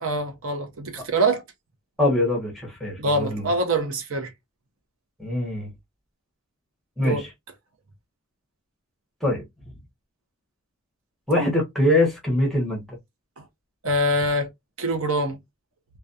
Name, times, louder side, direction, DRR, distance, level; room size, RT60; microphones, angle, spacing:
voice 1, 0.0-1.4 3.0-4.3 7.0-7.2 13.8-14.5 14.8-15.4, right 1 dB, 70° right, 0.7 m, -24 dB
voice 2, 2.0-3.5 5.2-5.7 7.0-7.3 9.2-9.4 11.3-12.8, left 1 dB, ahead, 0.9 m, -23 dB
2.4 x 2.2 x 2.5 m
head